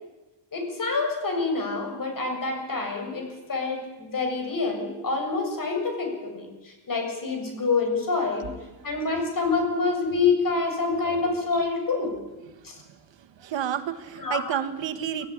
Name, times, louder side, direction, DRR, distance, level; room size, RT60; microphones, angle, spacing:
voice 1, 0.5-8.5 8.8-12.2 12.6-12.8 14.2-14.4, left 4 dB, 45° left, 4 dB, 7.1 m, -27 dB
voice 2, 12.8-15.3, right 9 dB, 75° right, 9 dB, 1.9 m, -31 dB
24.5 x 14.5 x 9.9 m, 1.1 s
cardioid pair, 115°, 45 cm